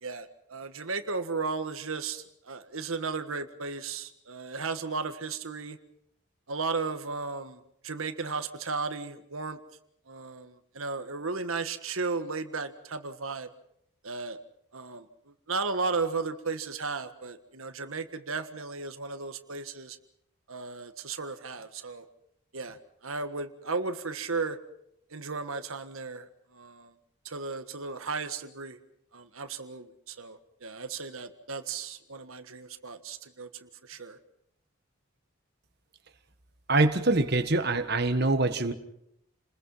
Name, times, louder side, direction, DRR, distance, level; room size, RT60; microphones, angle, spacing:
voice 1, 0.0-5.8 6.5-9.6 10.1-13.5 14.0-14.4 14.7-20.0 20.5-22.0 22.5-24.6 25.1-26.9 27.2-28.8 29.1-34.2, right 4 dB, 80° right, 8 dB, 1.6 m, -35 dB
voice 2, 36.7-38.7, right 2 dB, 50° right, 8 dB, 1.6 m, -24 dB
29.5 x 21.0 x 5.7 m, 0.75 s
head